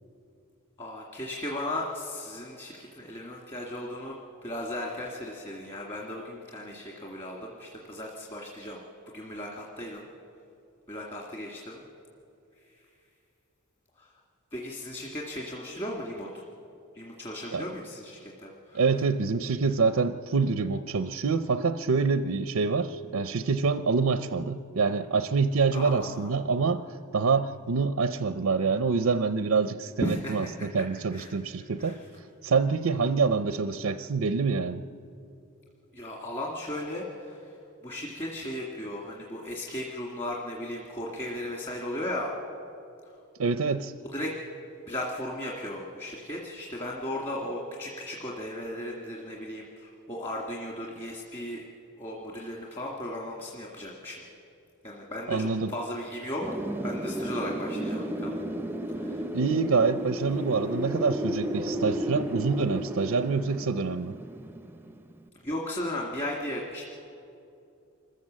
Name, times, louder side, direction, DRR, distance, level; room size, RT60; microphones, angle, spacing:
voice 1, 0.8-4.2 4.4-8.8 9.1-10.1 10.9-11.8 14.0-14.1 14.5-16.4 16.9-18.8 25.7-26.3 30.0-30.7 31.1-31.4 31.8-32.0 35.9-37.4 37.8-42.3 44.1-44.3 44.9-51.6 52.0-54.2 54.8-56.4 56.8-58.4 59.0-59.2 65.4-66.8, left 1 dB, 25° left, -2 dB, 2.0 m, -36 dB
voice 2, 18.7-32.0 32.4-34.8 43.4-43.9 55.3-55.7 59.3-64.2, right 4 dB, 85° right, 11 dB, 0.6 m, -26 dB
Wind, 56.4-65.1, equal, 10° right, 0.6 m, -33 dB
26.0 x 14.5 x 7.5 m, 2.7 s
head